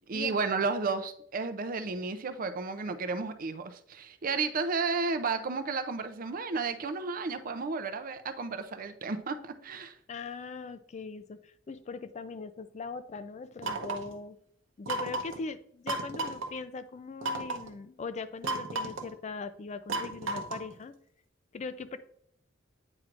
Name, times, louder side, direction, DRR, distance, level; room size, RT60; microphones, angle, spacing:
voice 1, 0.1-10.0, right 4 dB, 45° right, 10 dB, 0.5 m, -32 dB
voice 2, 10.1-14.4 14.8-20.9 21.5-22.0, left 4 dB, 35° left, 12 dB, 0.4 m, -40 dB
sound 1, 13.6-14.1 14.9-15.4 15.9-16.5 17.2-17.7 18.4-19.1 19.9-20.7, right 2 dB, 85° right, 0.8 m, -33 dB
8.8 x 4.6 x 2.5 m, 0.66 s
head